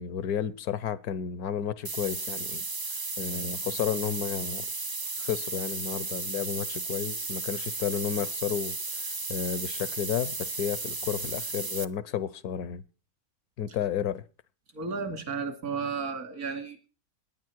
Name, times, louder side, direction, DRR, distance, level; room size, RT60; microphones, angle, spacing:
voice 1, 0.0-2.6 3.2-4.7 5.2-12.8 13.6-14.2, left 9 dB, 85° left, 1.4 m, -32 dB
sound 1, 1.8-11.8, right 3 dB, 35° right, 0.3 m, -34 dB
voice 2, 14.7-16.9, right 5 dB, 75° right, 2.8 m, -33 dB
19.0 x 10.0 x 4.6 m
omnidirectional pair, 1.6 m